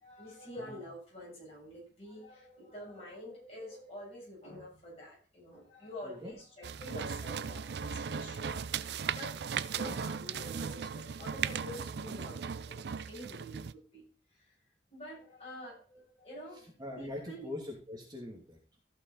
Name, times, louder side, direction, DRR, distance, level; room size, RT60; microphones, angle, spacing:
voice 1, 0.0-9.3 9.7-14.0 14.3-14.5 14.9-17.5, equal, 35° left, -5 dB, 6.9 m, -47 dB
sound 1, 6.6-13.7, right 6 dB, 65° right, 0.4 m, -37 dB
voice 2, 16.5-18.8, left 1 dB, 25° right, -2 dB, 2.5 m, -43 dB
14.5 x 6.2 x 4.0 m, 0.37 s
head